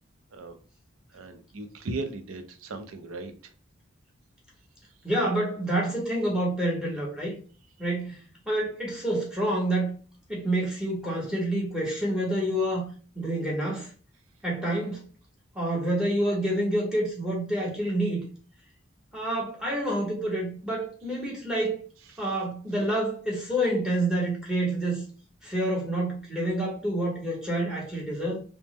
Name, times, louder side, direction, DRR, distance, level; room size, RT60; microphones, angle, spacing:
voice 1, 1.1-3.5 22.1-22.3, right 2 dB, 90° right, 0.5 m, -37 dB
voice 2, 5.0-7.3 7.8-9.9 10.3-12.9 13.1-13.9 14.4-15.0 15.5-18.2 19.1-21.8 22.2-25.1 25.4-28.4, right 1 dB, 5° right, 1.0 m, -28 dB
3.3 x 2.1 x 3.0 m
head